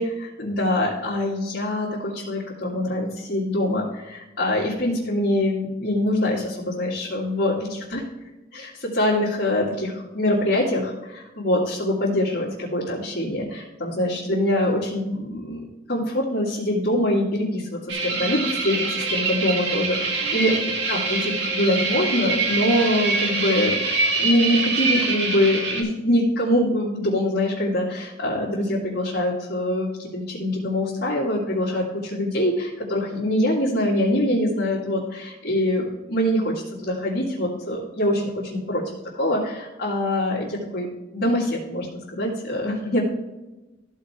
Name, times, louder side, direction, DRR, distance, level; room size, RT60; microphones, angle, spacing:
voice 1, 0.0-8.0 8.5-36.5 36.8-40.9 41.1-41.9 42.1-43.0, left 1 dB, 55° left, -8 dB, 2.2 m, -24 dB
sound 1, 17.9-25.8, right 3 dB, 70° right, 1.9 m, -25 dB
14.0 x 4.8 x 4.4 m, 1.1 s
head